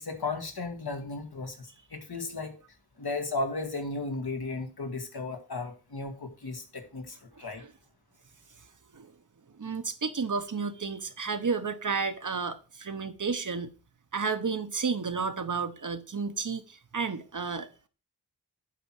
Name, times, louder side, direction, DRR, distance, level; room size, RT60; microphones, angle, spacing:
voice 1, 0.0-2.6 3.0-7.6, left 3 dB, 70° left, 1.7 m, -35 dB
voice 2, 7.3-7.7 8.9-9.1 9.5-13.7 14.1-17.9, right 5 dB, 50° right, 1.0 m, -32 dB
8.5 x 4.4 x 5.9 m
wide cardioid pair, 75°, 39 cm